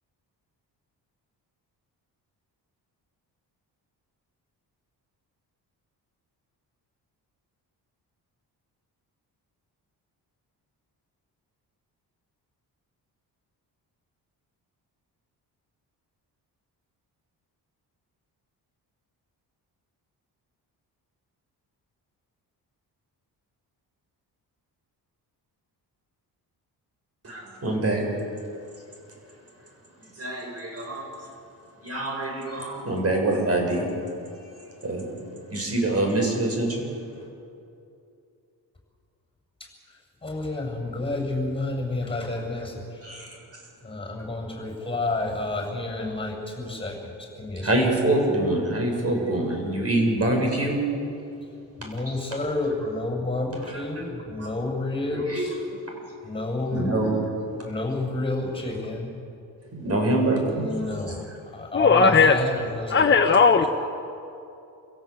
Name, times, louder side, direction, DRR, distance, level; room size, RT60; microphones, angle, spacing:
voice 1, 27.2-28.0 30.2-31.1 31.8-33.9 34.8-35.1 35.5-36.8 43.0-43.3 47.6-50.8 54.4-54.5 55.1-55.5 56.7-57.2 59.7-60.7 61.1-61.2 62.2-62.3 62.9-63.2, right 1 dB, 40° right, 1 dB, 7.3 m, -25 dB
voice 2, 40.2-43.0 43.8-47.8 51.8-55.6 56.2-57.0 57.6-59.1 60.4-61.2 61.5-63.0 63.6-63.7, left 2 dB, 15° left, 2 dB, 7.3 m, -30 dB
voice 3, 61.7-62.4 62.9-63.7, left 5 dB, 30° left, 4 dB, 1.1 m, -17 dB
28.0 x 16.5 x 8.5 m, 2.6 s
cardioid pair, 105°, 39 cm